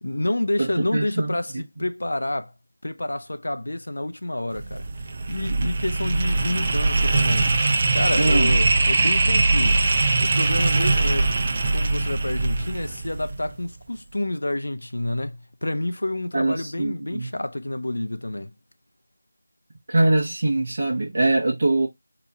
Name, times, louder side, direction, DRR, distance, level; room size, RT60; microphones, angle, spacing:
voice 1, 0.0-2.5 2.8-4.9 5.3-7.5 7.9-9.8 10.2-11.3 11.7-18.5, left 1 dB, 65° left, 0.5 m, -28 dB
voice 2, 0.6-1.4 8.2-8.6 16.3-17.3 19.9-21.9, right 2 dB, 40° right, 0.9 m, -22 dB
sound 1, 4.5-13.6, right 3 dB, 25° right, 0.4 m, -22 dB
2.9 x 2.3 x 4.2 m
figure-of-eight pair, 175°, 0 cm